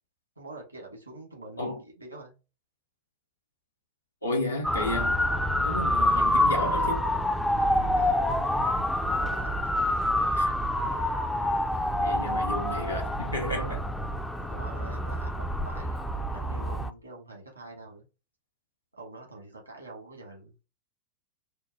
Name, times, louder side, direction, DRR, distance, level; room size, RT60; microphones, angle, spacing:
voice 1, 0.4-2.4 7.6-8.3 9.1-9.6 10.1-10.5 14.3-18.0 18.9-20.5, right 2 dB, 85° right, 1.3 m, -45 dB
voice 2, 4.2-5.2 5.6-7.1 10.4-10.5 12.0-13.8, left 1 dB, 80° left, 0.8 m, -32 dB
Motor vehicle (road) / Siren, 4.6-16.9, left 1 dB, 5° left, 0.3 m, -27 dB
4.4 x 2.1 x 2.7 m
figure-of-eight pair, 90°, 0 cm